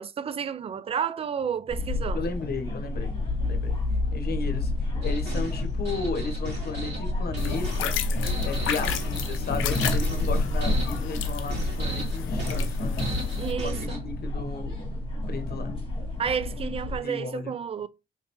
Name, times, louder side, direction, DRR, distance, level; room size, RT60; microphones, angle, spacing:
voice 1, 0.0-2.2 13.4-14.0 16.2-17.9, right 7 dB, 30° right, 0.3 m, -31 dB
sound 1, 1.7-17.0, left 2 dB, 25° left, 1.7 m, -29 dB
voice 2, 2.1-3.1 3.5-3.7 4.1-8.0 8.4-13.1 13.6-14.8 15.3-15.7 16.9-17.5, left 4 dB, 50° left, 1.0 m, -34 dB
sound 2, 5.0-14.0, right 1 dB, 60° right, 2.3 m, -35 dB
sound 3, 7.4-13.5, left 9 dB, 85° left, 0.6 m, -34 dB
3.6 x 3.1 x 3.0 m
cardioid pair, 90°, 20 cm